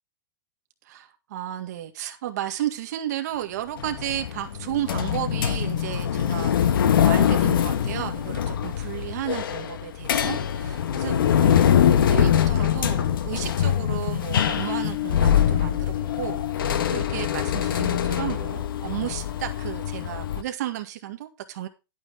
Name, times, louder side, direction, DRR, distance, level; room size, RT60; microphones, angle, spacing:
voice 1, 0.9-21.7, right 13 dB, 50° right, 2.0 m, -33 dB
sound 1, 3.8-20.4, left 9 dB, 80° left, 1.5 m, -23 dB
12.0 x 8.7 x 3.6 m
supercardioid pair, 170°, 11 cm